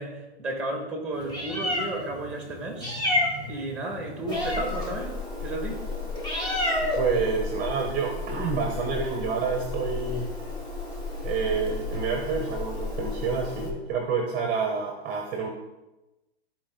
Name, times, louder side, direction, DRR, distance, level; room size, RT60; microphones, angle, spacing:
voice 1, 0.0-3.0 3.5-6.1, right 2 dB, 5° right, 1 dB, 1.8 m, -33 dB
Meow, 1.1-13.7, left 2 dB, 15° left, 1.8 m, -31 dB
voice 2, 6.8-10.3 11.2-15.5, right 5 dB, 25° right, 2 dB, 1.0 m, -28 dB
13.0 x 4.6 x 3.9 m, 1.0 s
hypercardioid pair, 150°, 34 cm